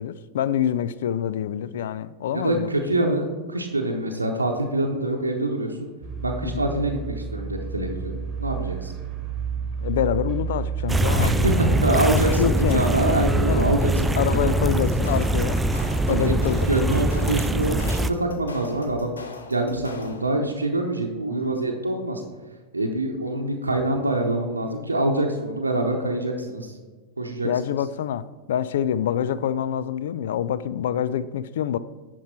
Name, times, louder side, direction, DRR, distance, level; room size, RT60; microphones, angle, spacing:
voice 1, 0.0-2.7 6.4-6.7 9.8-12.8 13.5-13.7 14.2-15.7 16.1-16.9 21.3-21.5 27.4-31.8, left 9 dB, 65° left, 0.4 m, -26 dB
voice 2, 2.3-5.9 6.2-8.9 11.2-14.5 16.1-16.3 16.7-19.2 19.4-22.2 22.7-26.7 27.2-27.5, right 1 dB, 90° right, 0.8 m, -25 dB
sound 1, 6.0-12.4, right 6 dB, 35° right, 1.4 m, -31 dB
sound 2, 10.9-18.1, right 1 dB, 10° right, 0.4 m, -23 dB
sound 3, 14.7-20.4, left 3 dB, 80° left, 0.8 m, -39 dB
10.0 x 4.5 x 4.4 m
figure-of-eight pair, 90°, 0 cm